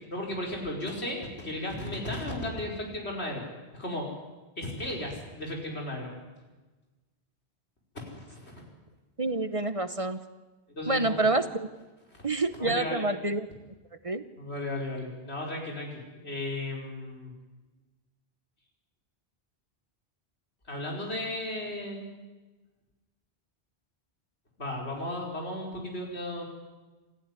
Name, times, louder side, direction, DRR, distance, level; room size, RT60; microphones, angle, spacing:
voice 1, 0.1-3.4 3.7-4.1 4.6-6.1 7.9-8.6 10.8-11.2 12.1-13.1 14.4-17.3 20.7-22.1 24.6-26.4, left 1 dB, 85° left, 0 dB, 5.5 m, -35 dB
voice 2, 9.2-10.2 10.9-11.7 12.2-13.5 14.0-14.2, right 2 dB, 35° right, 11 dB, 1.0 m, -27 dB
27.5 x 15.0 x 9.9 m, 1.2 s
omnidirectional pair, 1.1 m